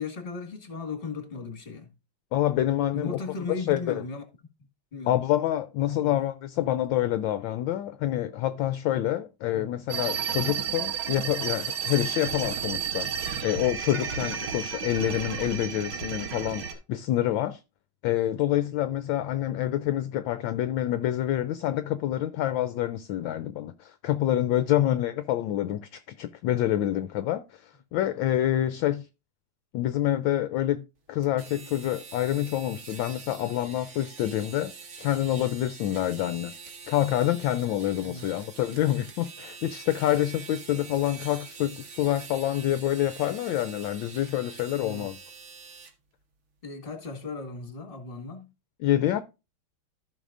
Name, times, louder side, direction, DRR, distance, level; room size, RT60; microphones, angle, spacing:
voice 1, 0.0-1.9 2.9-4.2 4.9-5.2 5.9-6.2 9.5-9.7 24.3-24.4 24.7-24.9 38.0-38.3 44.8-45.1 46.6-48.5, left 4 dB, 25° left, 1.8 m, -36 dB
voice 2, 2.3-3.2 3.6-4.0 5.1-13.1 13.4-17.6 18.0-29.1 29.7-30.8 31.1-34.7 35.0-36.5 36.9-45.2 48.8-49.2, left 13 dB, 75° left, 1.2 m, -27 dB
sound 1, 9.9-16.7, right 7 dB, 70° right, 1.8 m, -32 dB
sound 2, 31.2-45.9, right 5 dB, 45° right, 1.1 m, -45 dB
14.5 x 5.4 x 2.5 m
omnidirectional pair, 2.4 m